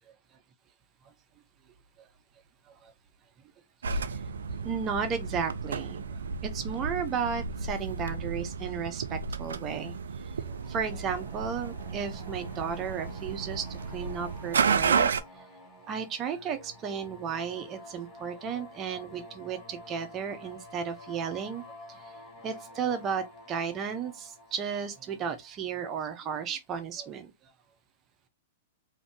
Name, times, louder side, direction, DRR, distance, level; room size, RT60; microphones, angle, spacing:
sound 1, 3.8-15.2, right 5 dB, 80° right, 0.3 m, -32 dB
voice 1, 4.6-9.9 10.4-15.5 15.8-21.6 21.9-22.1 22.4-27.3, right 7 dB, 30° right, 0.6 m, -34 dB
sound 2, 10.4-26.2, equal, 35° left, 1.4 m, -49 dB
2.6 x 2.5 x 3.5 m
hypercardioid pair, 115°, 0 cm